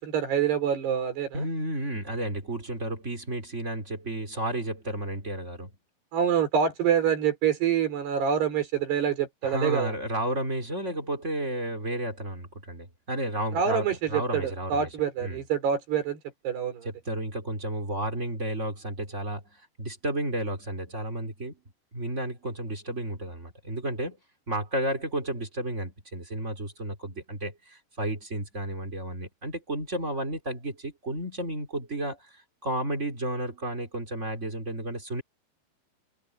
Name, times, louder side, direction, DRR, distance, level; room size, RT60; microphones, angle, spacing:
voice 1, 0.0-1.5 6.1-9.9 13.5-16.2 16.5-16.9, right 8 dB, 65° right, 7.0 m, -26 dB
voice 2, 1.3-5.7 9.4-15.4 16.8-21.6 21.9-24.2 24.5-35.2, right 1 dB, 20° right, 3.1 m, -32 dB
omnidirectional pair, 5.1 m